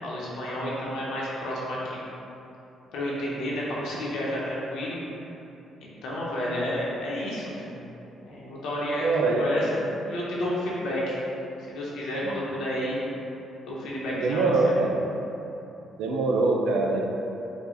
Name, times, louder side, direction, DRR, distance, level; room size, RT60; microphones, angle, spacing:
voice 1, 0.0-2.0 2.9-5.0 5.8-7.8 8.2-11.2 11.7-13.0 13.6-14.7, left 1 dB, 80° left, -6 dB, 1.1 m, -31 dB
voice 2, 9.0-9.5 14.2-14.9 16.0-17.0, right 3 dB, 90° right, 0 dB, 0.5 m, -23 dB
5.3 x 2.4 x 3.9 m, 2.9 s
cardioid pair, 90°, 0 cm